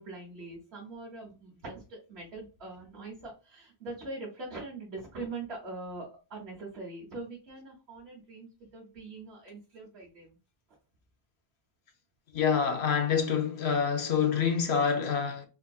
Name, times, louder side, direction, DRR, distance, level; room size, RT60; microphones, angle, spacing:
voice 1, 0.0-10.4, right 3 dB, 80° right, 1.4 m, -42 dB
voice 2, 12.3-15.5, left 6 dB, 80° left, 1.0 m, -27 dB
3.7 x 2.6 x 2.3 m
omnidirectional pair, 1.1 m